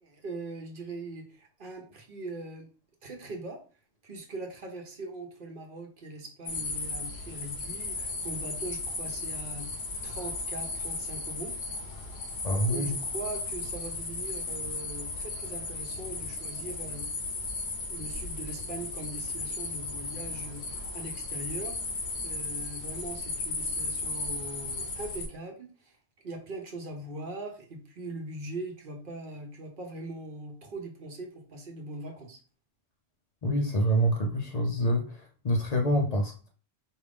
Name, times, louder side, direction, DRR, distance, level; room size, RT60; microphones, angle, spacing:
voice 1, 0.0-2.7 3.0-3.6 4.0-9.7 10.0-11.6 12.7-17.1 17.9-26.0 26.2-32.4, right 2 dB, 50° right, 2 dB, 1.0 m, -41 dB
sound 1, 6.5-25.3, left 3 dB, 65° left, 1.1 m, -35 dB
voice 2, 12.4-13.0 33.4-36.5, equal, 40° left, 1 dB, 0.6 m, -27 dB
4.6 x 2.5 x 3.4 m, 0.38 s
omnidirectional pair, 1.2 m